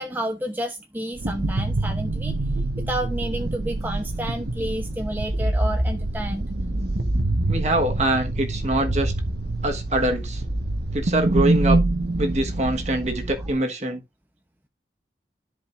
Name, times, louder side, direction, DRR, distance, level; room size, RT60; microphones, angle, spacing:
voice 1, 0.0-2.4 2.9-6.5, right 1 dB, 10° right, 0.7 m, -30 dB
sound 1, 1.2-13.5, right 2 dB, 70° right, 1.2 m, -25 dB
voice 2, 7.5-9.1 9.6-10.4 10.9-11.8 12.2-14.0, right 1 dB, 40° right, 1.3 m, -24 dB
13.5 x 5.1 x 2.5 m
head